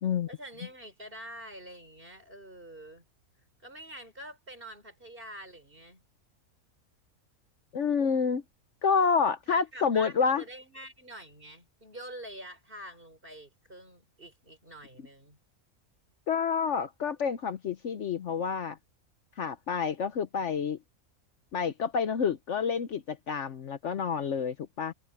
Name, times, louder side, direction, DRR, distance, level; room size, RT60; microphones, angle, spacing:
voice 1, 0.3-3.0 3.6-6.0 9.5-15.4, right 1 dB, 40° right, 5.3 m, -46 dB
voice 2, 7.7-8.4 8.8-10.4 16.3-18.8 19.4-20.8 21.5-24.9, left 6 dB, 60° left, 1.1 m, -28 dB
omnidirectional pair, 1.5 m